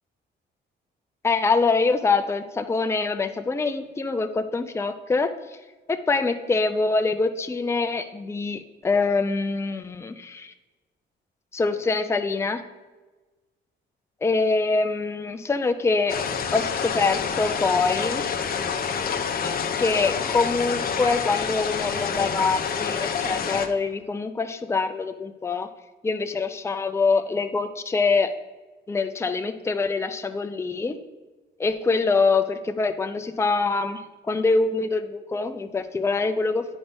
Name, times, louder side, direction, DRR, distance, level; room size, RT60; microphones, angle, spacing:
voice 1, 1.2-5.3 5.9-10.5 11.5-12.6 14.2-16.2 16.5-18.3 19.8-25.7 26.0-28.3 28.9-31.0 31.6-36.7, left 4 dB, 15° left, 8 dB, 0.5 m, -24 dB
sound 1, 16.1-23.7, left 6 dB, 50° left, 0.7 m, -27 dB
9.3 x 5.2 x 3.5 m, 1.2 s
cardioid pair, 90°, 20 cm